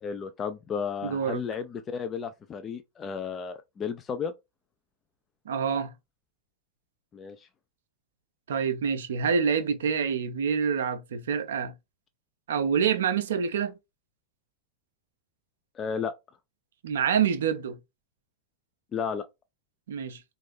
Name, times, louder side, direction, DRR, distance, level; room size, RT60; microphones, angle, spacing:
voice 1, 0.0-4.3 7.1-7.5 15.8-16.1 18.9-19.3, left 6 dB, 25° left, 0.4 m, -33 dB
voice 2, 1.0-1.4 5.5-5.9 8.5-11.7 12.5-13.7 16.8-17.8 19.9-20.2, right 7 dB, 60° right, 0.5 m, -27 dB
3.7 x 2.5 x 3.2 m
figure-of-eight pair, 90°, 0 cm